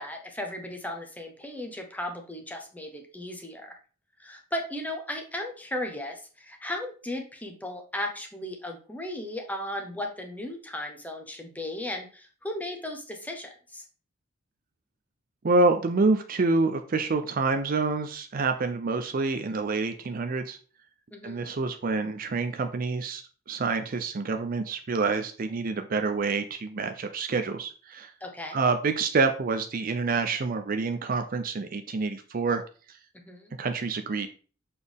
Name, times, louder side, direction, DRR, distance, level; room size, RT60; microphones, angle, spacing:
voice 1, 0.0-3.8 4.2-13.8 21.1-21.5 28.2-28.6 33.3-33.5, left 1 dB, 10° left, 3 dB, 0.9 m, -36 dB
voice 2, 15.4-20.6 21.2-23.2 23.5-28.1 28.5-32.6 33.6-34.3, right 3 dB, 40° right, 7 dB, 0.4 m, -27 dB
6.8 x 4.2 x 3.5 m, 0.39 s
head